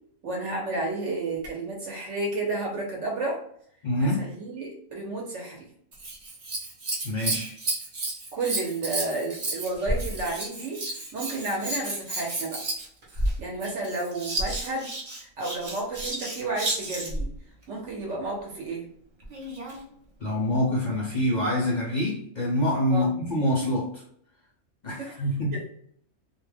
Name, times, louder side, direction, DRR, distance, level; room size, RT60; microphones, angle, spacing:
voice 1, 0.2-3.4 4.0-5.7 8.3-12.6 13.4-14.9 15.2-17.3 17.7-18.9 22.9-23.1 25.0-25.2 25.5-25.7, right 2 dB, 65° right, -2 dB, 1.0 m, -31 dB
voice 2, 3.8-4.2 7.0-7.6 20.2-24.0 24.8-25.6, left 1 dB, 50° left, -4 dB, 0.5 m, -26 dB
Scissors, 5.9-17.3 19.2-19.8 20.6-20.7, right 2 dB, 45° right, 0.6 m, -32 dB
2.4 x 2.1 x 3.3 m, 0.65 s
omnidirectional pair, 1.4 m